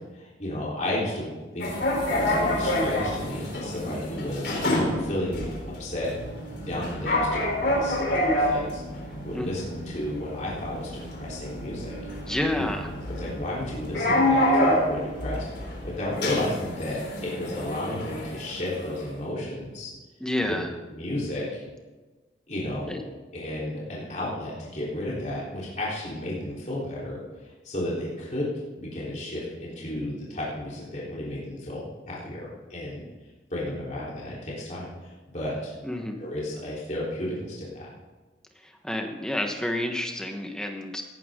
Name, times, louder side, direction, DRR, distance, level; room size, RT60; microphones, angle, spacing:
voice 1, 0.1-1.7 2.1-5.5 5.8-6.1 6.6-8.8 9.2-12.0 12.5-12.7 13.1-15.4 15.8-19.9 20.4-20.5 20.9-21.6 22.5-22.9 23.3-27.2 27.6-28.4 28.8-33.0 33.5-35.7 36.2-37.8, left 1 dB, 40° left, -7 dB, 3.9 m, -33 dB
sound 1, 1.6-19.1, left 1 dB, 65° left, 3.8 m, -28 dB
voice 2, 12.3-12.9 20.2-20.7 22.9-23.0 35.8-36.2 38.8-41.0, left 1 dB, 5° left, 3 dB, 1.3 m, -29 dB
17.5 x 12.0 x 3.8 m, 1.2 s
head